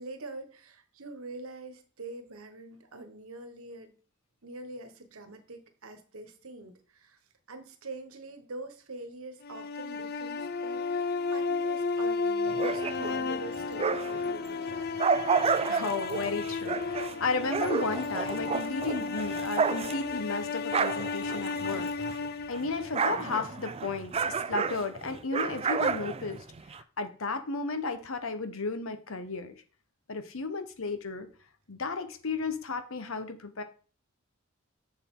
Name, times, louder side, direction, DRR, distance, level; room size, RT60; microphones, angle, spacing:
voice 1, 0.0-3.9 4.4-7.2 7.5-14.9, right 2 dB, 80° right, 8 dB, 1.3 m, -44 dB
sound 1, 9.4-23.6, left 4 dB, 50° left, 0.5 m, -33 dB
sound 2, 12.5-14.3 14.7-22.3 22.5-26.8, right 5 dB, 30° right, 0.4 m, -31 dB
voice 2, 15.7-21.9 22.5-24.1 24.5-26.4 26.7-29.6 30.1-31.3 31.7-33.6, left 3 dB, 70° left, 9 dB, 1.0 m, -33 dB
6.9 x 6.9 x 3.7 m, 0.38 s
head